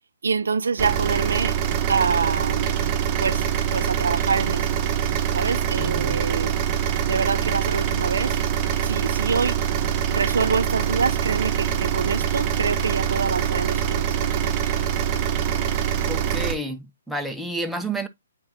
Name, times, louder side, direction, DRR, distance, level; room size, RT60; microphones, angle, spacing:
voice 1, 0.2-1.6 1.9-2.8 3.2-4.7 5.3-6.5 7.0-8.4 8.8-9.7 10.1-14.6, right 5 dB, 70° right, 0.5 m, -26 dB
sound 1, 0.8-16.5, right 9 dB, 25° right, 1.1 m, -24 dB
voice 2, 5.8-6.2 16.1-18.1, right 1 dB, ahead, 0.8 m, -30 dB
9.5 x 4.5 x 2.7 m
figure-of-eight pair, 130°, 0 cm